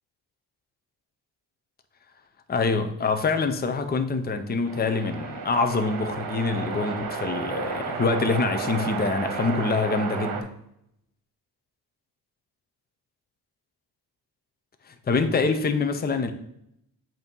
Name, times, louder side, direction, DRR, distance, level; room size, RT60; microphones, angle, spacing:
voice 1, 2.5-10.5 14.9-16.3, left 4 dB, 25° left, 7 dB, 0.7 m, -25 dB
sound 1, 4.7-10.4, right 5 dB, 55° right, 1.2 m, -32 dB
8.1 x 2.9 x 5.3 m, 0.76 s
cardioid pair, 105°, 42 cm